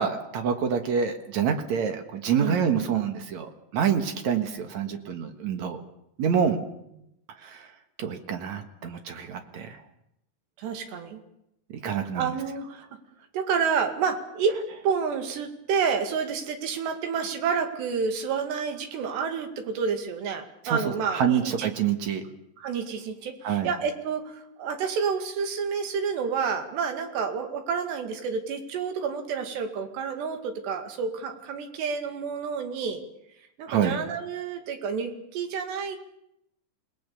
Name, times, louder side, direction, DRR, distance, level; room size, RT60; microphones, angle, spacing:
voice 1, 0.0-5.8 6.2-6.6 7.4-7.7 8.0-9.8 11.7-12.3 20.6-22.3 23.4-23.7 33.7-34.0, right 7 dB, 55° right, 7 dB, 2.4 m, -27 dB
voice 2, 10.6-11.2 12.2-12.9 13.3-14.6 14.8-21.7 22.6-33.0 33.6-36.0, right 6 dB, 85° right, 6 dB, 4.4 m, -29 dB
28.0 x 19.5 x 7.0 m, 0.80 s
omnidirectional pair, 4.8 m